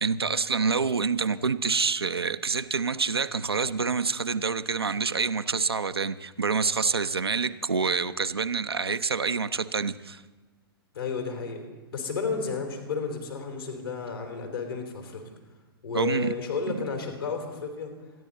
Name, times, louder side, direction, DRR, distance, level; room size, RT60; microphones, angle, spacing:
voice 1, 0.0-10.2 15.9-16.3 16.7-16.8, right 5 dB, 80° right, 11 dB, 0.5 m, -27 dB
voice 2, 10.9-11.6 11.9-15.2 15.8-17.9, left 5 dB, 70° left, 3 dB, 3.6 m, -32 dB
27.5 x 10.5 x 4.1 m, 1.3 s
figure-of-eight pair, 105°, 13 cm